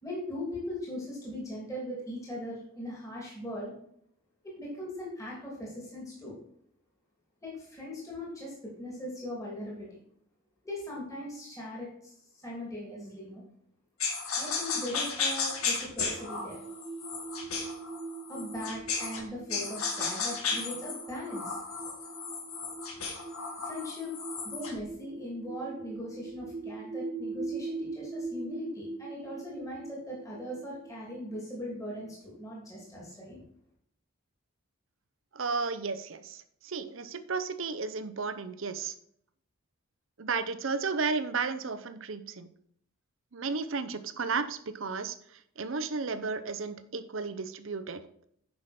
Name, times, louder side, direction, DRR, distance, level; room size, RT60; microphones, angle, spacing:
voice 1, 0.0-3.7 4.4-6.4 7.4-9.9 10.6-13.4 14.4-16.6 18.3-21.6 23.6-24.1 24.4-33.4, left 1 dB, 15° left, -4 dB, 2.8 m, -39 dB
sound 1, 14.0-19.2 19.5-24.8, left 5 dB, 85° left, 1.8 m, -34 dB
sound 2, 16.0-32.3, right 3 dB, 90° right, 2.1 m, -42 dB
voice 2, 35.3-38.9 40.2-42.5 43.3-45.1 45.6-48.0, right 4 dB, 65° right, 12 dB, 0.7 m, -33 dB
9.7 x 5.6 x 4.3 m, 0.69 s
head